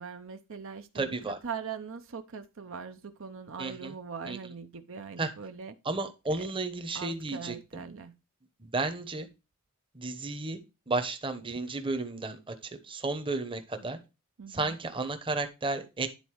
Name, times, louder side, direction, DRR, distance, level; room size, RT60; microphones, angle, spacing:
voice 1, 0.0-5.7 6.3-6.5 6.9-8.1 14.4-14.8, right 6 dB, 65° right, 0.7 m, -41 dB
voice 2, 0.9-1.4 3.6-3.9 4.3-4.4 5.2-5.3 5.8-7.8 8.7-9.3 9.9-10.6 10.9-14.0 14.5-16.1, right 3 dB, 25° right, 0.9 m, -33 dB
10.5 x 4.1 x 4.6 m
head